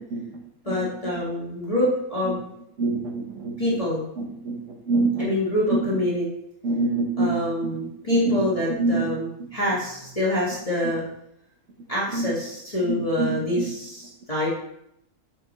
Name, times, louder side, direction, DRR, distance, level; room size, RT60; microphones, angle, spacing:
voice 1, 0.6-2.4 3.6-4.0 5.2-6.3 7.2-11.0 11.9-14.5, left 1 dB, 25° left, -7 dB, 1.5 m, -26 dB
voice 2, 2.8-3.5 4.2-4.6 4.9-5.3 5.7-5.8 6.6-7.3 8.1-8.4 8.8-9.0 12.1-12.3 12.9-13.3 13.6-13.7, right 2 dB, 60° right, 4 dB, 1.3 m, -24 dB
6.7 x 5.6 x 3.1 m, 0.77 s
omnidirectional pair, 1.5 m